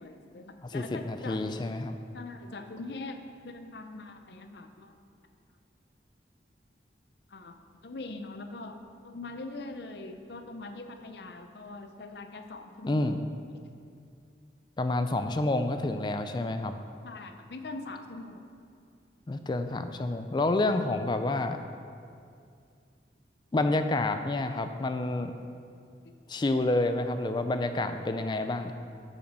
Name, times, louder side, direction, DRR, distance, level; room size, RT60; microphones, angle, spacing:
voice 1, 0.0-1.5 2.1-5.0 7.3-13.0 17.0-18.4 26.0-26.2, left 2 dB, 65° left, 7 dB, 0.6 m, -42 dB
voice 2, 0.6-2.0 12.8-13.2 14.8-16.7 19.3-21.6 23.5-25.3 26.3-28.7, left 2 dB, 25° left, 8 dB, 0.3 m, -29 dB
8.4 x 5.9 x 6.1 m, 2.4 s
head